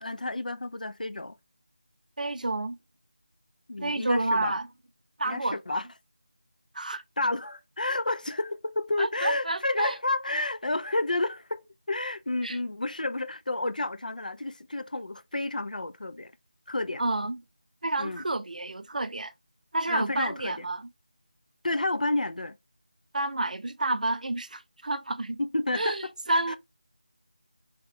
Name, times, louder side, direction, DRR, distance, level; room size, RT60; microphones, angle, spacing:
voice 1, 0.0-1.4 3.7-4.6 5.2-5.9 7.2-16.3 16.7-17.0 18.0-18.2 19.9-20.6 21.6-22.6 25.4-26.6, left 2 dB, 80° left, 0.4 m, -30 dB
voice 2, 2.2-2.8 3.8-4.7 5.2-5.8 6.7-7.0 9.0-9.9 12.4-12.6 17.0-17.4 17.8-19.3 19.7-20.9 23.1-25.4 25.7-26.6, right 2 dB, 70° right, 0.4 m, -30 dB
2.9 x 2.3 x 3.2 m
figure-of-eight pair, 170°, 4 cm